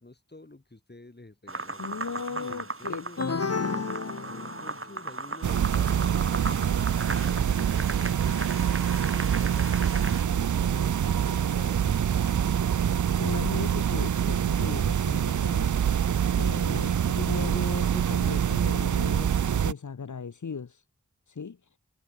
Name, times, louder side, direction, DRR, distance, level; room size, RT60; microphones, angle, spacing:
voice 1, 0.0-3.5 4.2-6.9 7.2-8.4 8.9-12.2, left 2 dB, 35° left, 6.6 m, -49 dB
sound 1, 1.5-10.2, right 3 dB, 45° right, 4.3 m, -37 dB
voice 2, 1.8-4.0 12.9-16.1 16.3-20.8 21.3-21.6, left 5 dB, 80° left, 1.3 m, -37 dB
sound 2, 3.2-5.0, left 4 dB, 55° left, 1.4 m, -32 dB
sound 3, 5.4-19.7, right 8 dB, 80° right, 0.5 m, -25 dB
wide cardioid pair, 70°, 29 cm